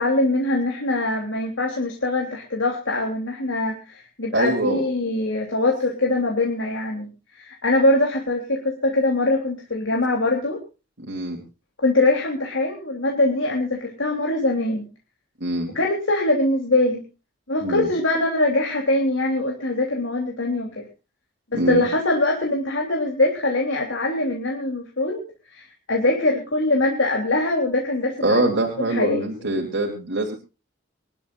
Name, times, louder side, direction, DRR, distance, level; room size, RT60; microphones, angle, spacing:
voice 1, 0.0-7.1 7.4-10.6 11.8-14.8 15.7-17.0 17.5-20.8 21.5-25.2 25.5-28.5 28.8-29.5, left 2 dB, 70° left, 0 dB, 3.4 m, -23 dB
voice 2, 4.3-4.8 11.1-11.4 15.4-15.8 17.6-17.9 21.5-21.8 28.2-30.3, right 1 dB, 60° right, -1 dB, 3.3 m, -23 dB
25.5 x 12.5 x 2.6 m, 0.31 s
head